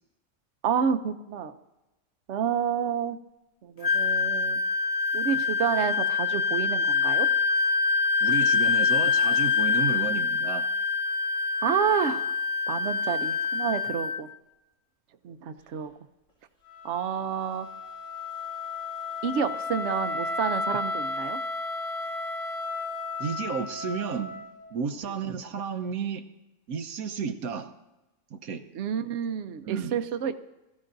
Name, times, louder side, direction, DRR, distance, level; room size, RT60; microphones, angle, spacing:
voice 1, 0.6-1.5 2.3-3.2 3.6-4.6 5.1-7.3 11.6-12.3 12.7-14.3 15.2-15.9 16.8-17.7 19.2-21.4 28.7-30.3, right 8 dB, 60° right, 9 dB, 0.9 m, -29 dB
Wind instrument woodwind instrument, 3.8-14.2, left 5 dB, 40° left, 0.6 m, -25 dB
voice 2, 8.2-10.7 23.2-24.4 24.7-26.2 26.7-27.7 28.3-28.6 29.6-29.9, right 6 dB, 85° right, 7 dB, 1.4 m, -32 dB
Wind instrument woodwind instrument 2, 16.7-24.7, left 3 dB, 60° left, 6.0 m, -34 dB
21.0 x 14.0 x 2.6 m, 1.0 s
omnidirectional pair, 1.5 m